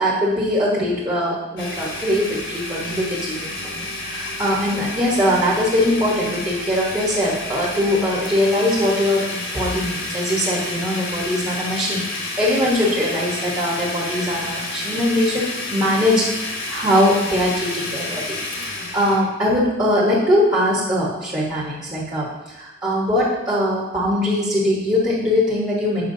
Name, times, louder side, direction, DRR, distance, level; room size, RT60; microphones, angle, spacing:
voice 1, 0.0-26.1, left 1 dB, 20° right, -7 dB, 1.2 m, -21 dB
Domestic sounds home sounds, 1.6-19.2, left 2 dB, 60° left, 1.3 m, -30 dB
8.1 x 5.8 x 2.7 m, 1.0 s
head